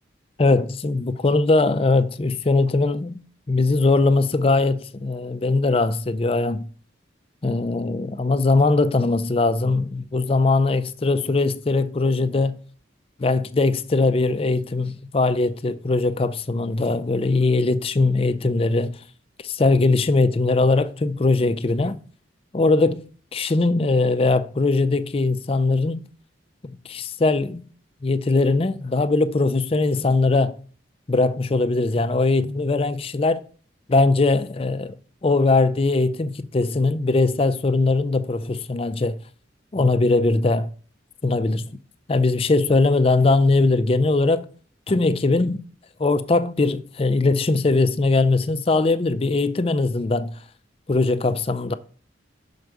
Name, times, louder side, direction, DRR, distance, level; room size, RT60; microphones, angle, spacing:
voice 1, 0.4-3.2 3.5-6.7 7.4-12.6 13.2-19.0 19.4-22.0 22.5-23.1 23.3-26.1 26.6-27.6 28.0-30.6 31.1-33.4 33.9-34.9 35.2-39.2 39.7-40.7 41.2-41.7 42.1-44.4 44.9-45.6 46.0-50.4 50.9-51.7, left 3 dB, 30° left, 0.4 m, -20 dB
6.5 x 4.5 x 4.8 m
head